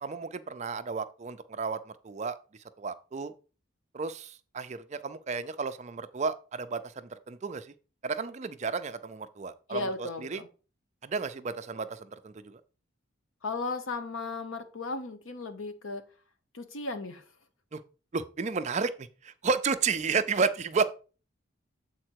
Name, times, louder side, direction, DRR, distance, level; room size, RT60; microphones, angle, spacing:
voice 1, 0.0-2.4 2.8-3.3 3.9-7.7 8.0-10.4 11.0-12.6 17.7-17.8 18.1-20.8, right 5 dB, 35° right, 0.4 m, -32 dB
voice 2, 9.7-10.5 13.4-16.0 16.5-17.2, left 3 dB, 85° left, 1.0 m, -35 dB
7.6 x 4.3 x 4.5 m
head